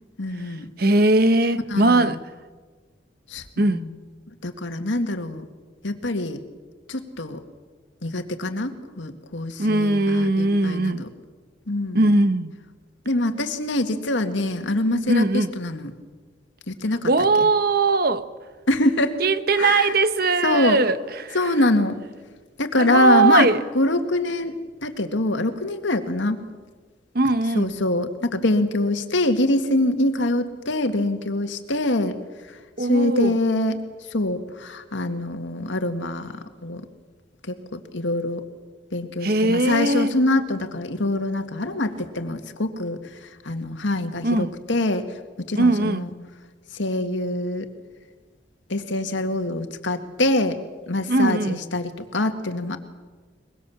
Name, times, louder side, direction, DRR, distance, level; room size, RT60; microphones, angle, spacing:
voice 1, 0.2-0.7 1.7-2.2 3.3-4.0 4.4-5.5 5.8-6.4 6.9-7.4 8.0-11.1 11.7-12.1 13.1-15.9 16.7-17.1 18.7-19.2 19.6-19.9 20.4-20.8 21.3-22.0 22.6-26.4 27.5-32.2 32.5-33.8 34.1-36.9 37.5-38.4 38.9-45.0 45.5-46.1 46.7-47.7 48.7-50.6 50.9-52.8, left 1 dB, 85° left, 2.0 m, -24 dB
voice 2, 0.8-2.2 3.6-3.8 9.6-11.1 11.9-12.5 15.1-15.5 17.1-18.3 19.2-21.4 22.8-23.6 27.1-27.7 32.8-33.3 39.2-40.1 44.2-44.5 45.5-46.1 51.1-51.6, right 2 dB, 55° right, 1.1 m, -20 dB
23.0 x 22.5 x 7.2 m
head